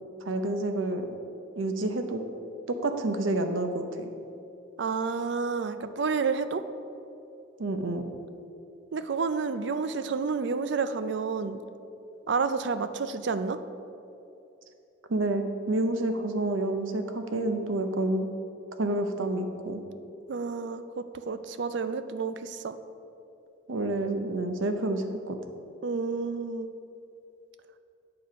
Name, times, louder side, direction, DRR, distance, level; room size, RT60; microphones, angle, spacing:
voice 1, 0.2-1.0 1.6-2.2 2.7-4.1 7.6-8.1 15.1-18.3 18.8-19.8 23.7-25.4, right 2 dB, 85° right, 6 dB, 0.8 m, -29 dB
voice 2, 4.8-6.6 8.9-11.6 12.3-13.6 20.3-22.8 25.8-26.7, right 5 dB, 60° right, 11 dB, 0.4 m, -30 dB
8.6 x 6.9 x 5.2 m, 2.8 s
head